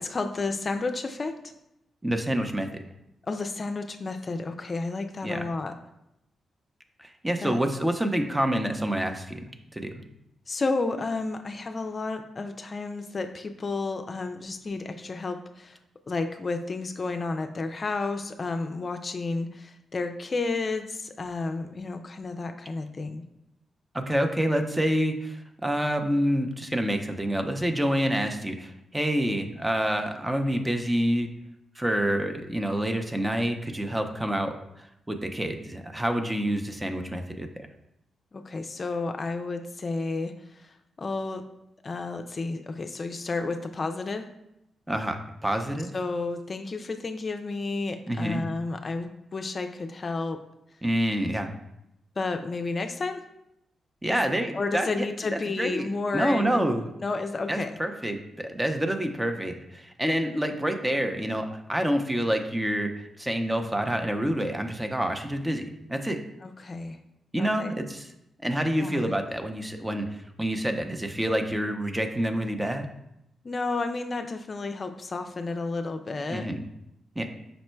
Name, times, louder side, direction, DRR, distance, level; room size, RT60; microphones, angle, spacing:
voice 1, 0.0-1.4 3.2-5.7 7.4-7.6 10.5-15.8 16.1-23.2 38.3-41.4 41.8-44.3 45.9-50.4 52.2-53.2 54.1-54.2 54.5-56.6 57.0-57.8 66.4-67.0 67.4-67.7 68.8-69.1 73.4-76.5, left 3 dB, 45° left, 6 dB, 0.4 m, -31 dB
voice 2, 2.0-2.7 5.2-5.4 7.0-10.0 23.9-31.3 31.8-37.5 44.9-45.9 48.1-48.4 50.8-51.5 54.0-55.1 55.3-55.9 56.1-56.9 57.5-62.9 63.2-65.6 65.9-66.2 67.3-68.1 68.4-72.9 76.3-76.6 77.2-77.3, right 1 dB, 15° right, 5 dB, 0.6 m, -27 dB
5.2 x 2.1 x 4.4 m, 0.84 s
supercardioid pair, 45°, 0 cm